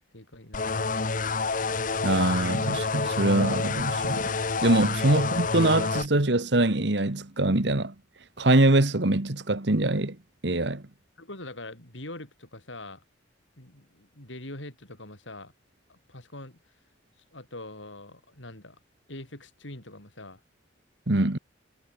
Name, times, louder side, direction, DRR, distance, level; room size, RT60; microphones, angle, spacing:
voice 1, 0.1-1.0 11.2-13.0 13.6-15.5 15.9-16.6 17.3-18.8 19.1-20.4, left 2 dB, 90° left, 7.5 m, -43 dB
sound 1, 0.5-6.1, left 4 dB, 45° left, 1.2 m, -28 dB
voice 2, 2.0-4.3 4.6-7.9 8.4-10.2 10.4-10.8 21.1-21.4, right 2 dB, 65° right, 1.7 m, -23 dB
head